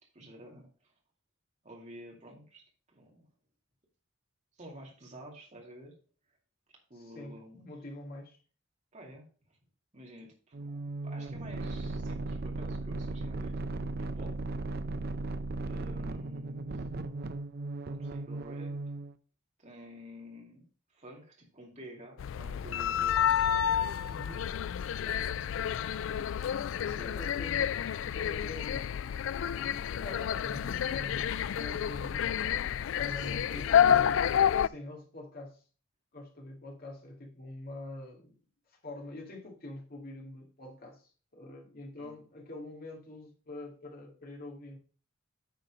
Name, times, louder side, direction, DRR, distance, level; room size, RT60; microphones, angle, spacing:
voice 1, 0.1-0.9 1.6-3.3 4.6-6.0 6.9-7.7 8.9-9.6 9.9-14.4 15.6-16.8 17.9-18.8 19.6-23.3 25.0-25.4 26.6-27.2 28.1-28.2 33.1-33.7 42.0-42.1, equal, 35° right, 2.4 m, -50 dB
voice 2, 7.0-7.4 7.7-8.4 24.1-24.5 27.0-27.7 28.1-28.9 29.5-32.4 33.0-34.2 34.6-35.6 36.1-38.3 38.7-44.8, left 1 dB, 50° left, 2.0 m, -45 dB
sound 1, 10.5-19.1, right 2 dB, 50° right, 0.6 m, -37 dB
sound 2, 22.2-34.7, left 9 dB, 65° left, 0.3 m, -29 dB
9.2 x 4.2 x 5.2 m
head